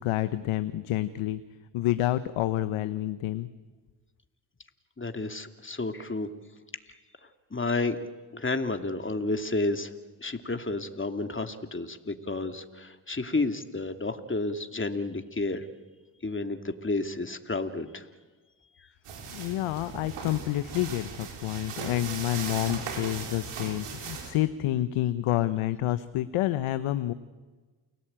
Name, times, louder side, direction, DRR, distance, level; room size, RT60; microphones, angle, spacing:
voice 1, 0.0-1.4 1.7-3.5 19.3-27.1, left 14 dB, 85° left, 12 dB, 1.0 m, -28 dB
voice 2, 5.0-6.3 7.2-8.0 8.3-9.9 10.2-15.7 16.2-18.1, left 2 dB, 25° left, 7 dB, 2.6 m, -31 dB
sound 1, 19.1-24.3, right 5 dB, 85° right, 4.8 m, -38 dB
29.5 x 19.0 x 8.9 m, 1.3 s
supercardioid pair, 40°, 49 cm